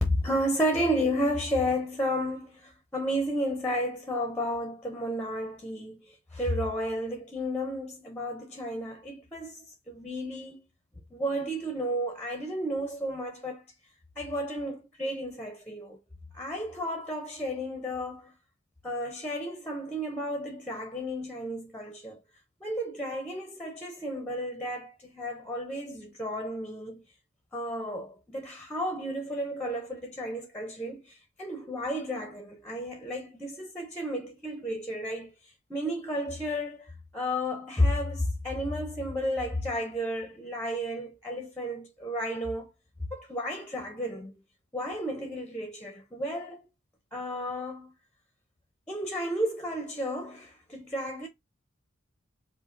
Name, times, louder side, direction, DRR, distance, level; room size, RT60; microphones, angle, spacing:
voice 1, 0.0-10.6 11.1-13.7 14.2-16.0 16.3-18.3 18.8-22.2 22.6-27.0 27.5-35.3 35.7-42.7 43.1-44.3 44.7-46.7 47.1-47.9 48.9-51.3, equal, 10° left, 0.9 m, -32 dB
5.4 x 2.2 x 3.9 m
head